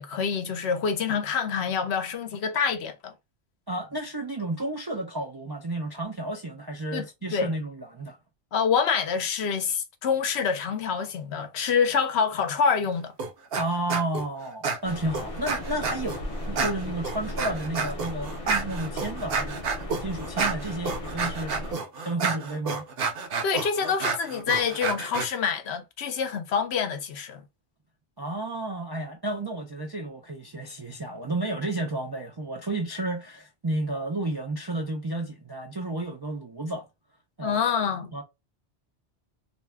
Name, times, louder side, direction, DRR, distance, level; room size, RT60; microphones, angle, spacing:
voice 1, 0.0-3.1 6.9-7.1 7.3-7.5 8.5-13.1 23.4-27.4 37.4-38.1, left 6 dB, 70° left, 0.8 m, -26 dB
voice 2, 3.7-8.2 13.6-19.6 20.0-22.8 28.2-36.9 37.4-37.6 38.1-38.2, right 2 dB, 40° right, 0.3 m, -32 dB
sound 1, 13.2-13.6 13.9-14.2 14.6-16.2 16.6-25.3, right 4 dB, 60° right, 0.8 m, -30 dB
sound 2, 14.8-21.7, left 1 dB, 35° left, 0.6 m, -36 dB
2.6 x 2.2 x 3.3 m
omnidirectional pair, 1.2 m